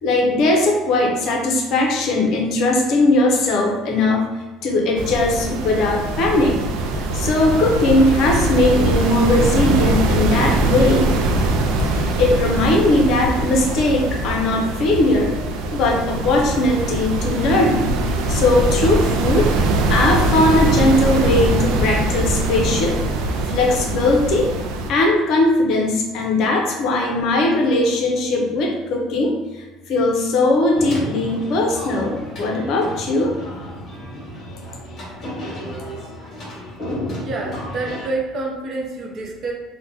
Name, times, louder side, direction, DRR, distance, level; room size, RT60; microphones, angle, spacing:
voice 1, 0.0-4.3 4.6-6.6 7.1-11.1 11.8-15.3 15.7-18.0 18.3-19.5 19.9-23.0 23.5-24.5 24.9-33.3, left 2 dB, 55° left, 0 dB, 0.6 m, -19 dB
sound 1, 5.0-24.9, right 2 dB, 80° right, 0.3 m, -22 dB
sound 2, 30.7-38.1, equal, 35° left, 1.2 m, -32 dB
voice 2, 37.1-39.5, right 3 dB, 40° right, -1 dB, 0.6 m, -27 dB
2.7 x 2.1 x 3.7 m, 1.2 s
cardioid pair, 150°, 0 cm